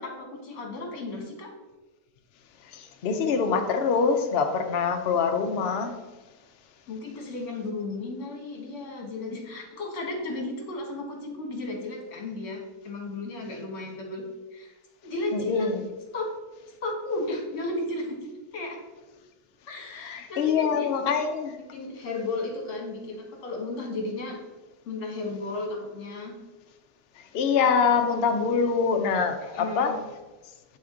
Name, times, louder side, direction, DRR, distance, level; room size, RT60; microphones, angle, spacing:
voice 1, 0.0-1.5 6.9-14.2 14.5-14.7 15.0-15.7 16.1-16.3 16.8-18.2 18.5-18.8 19.7-21.1 21.7-24.4 24.8-26.3 29.4-29.9, left 2 dB, 50° left, 0 dB, 1.6 m, -34 dB
voice 2, 2.7-6.0 15.5-15.7 20.0-21.5 27.3-30.0, left 5 dB, 65° left, 5 dB, 0.6 m, -24 dB
7.1 x 4.2 x 3.7 m, 1.2 s
omnidirectional pair, 1.8 m